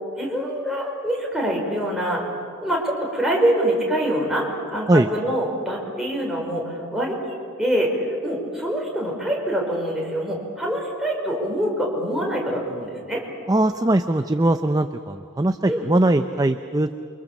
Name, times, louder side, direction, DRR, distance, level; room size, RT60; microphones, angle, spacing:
voice 1, 0.2-2.2 2.6-7.2 7.6-13.2 15.7-15.9, right 1 dB, ahead, -2 dB, 4.9 m, -25 dB
voice 2, 13.5-16.9, right 1 dB, 15° right, 8 dB, 0.6 m, -20 dB
28.5 x 24.5 x 7.3 m, 2.4 s
head